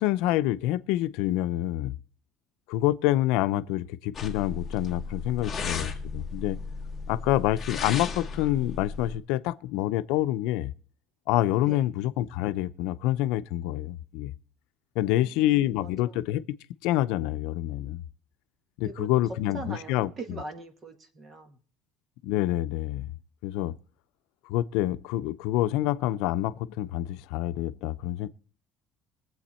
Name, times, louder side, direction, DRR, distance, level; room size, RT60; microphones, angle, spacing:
voice 1, 0.0-2.0 2.7-6.6 7.1-10.7 11.3-14.3 15.0-16.4 16.8-18.0 18.8-20.4 22.2-23.1 23.4-23.7 24.5-28.3, left 14 dB, 90° left, 0.6 m, -27 dB
sound 1, 4.1-9.2, left 4 dB, 10° left, 2.0 m, -35 dB
voice 2, 15.1-16.2 18.8-19.1 19.5-21.6, right 2 dB, 25° right, 1.4 m, -42 dB
22.0 x 7.8 x 4.4 m
cardioid pair, 175°, 0 cm